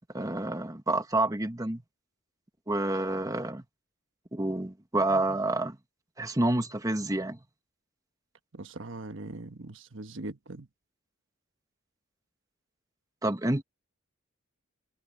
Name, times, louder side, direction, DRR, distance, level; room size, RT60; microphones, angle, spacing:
voice 1, 0.1-1.8 2.7-3.6 4.3-5.8 6.2-7.4 13.2-13.6, right 2 dB, 20° right, 1.3 m, -28 dB
voice 2, 8.5-10.7, right 2 dB, 70° right, 1.2 m, -41 dB
head